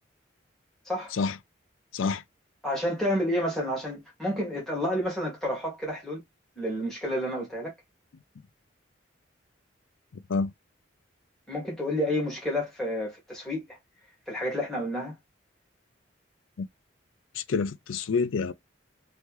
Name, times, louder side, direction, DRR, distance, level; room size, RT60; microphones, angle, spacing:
voice 1, 2.6-6.2 6.5-7.7 11.5-13.8 14.3-15.1, equal, ahead, 1.8 m, -30 dB
voice 2, 17.4-18.5, left 4 dB, 85° left, 0.4 m, -27 dB
3.3 x 3.0 x 3.0 m
head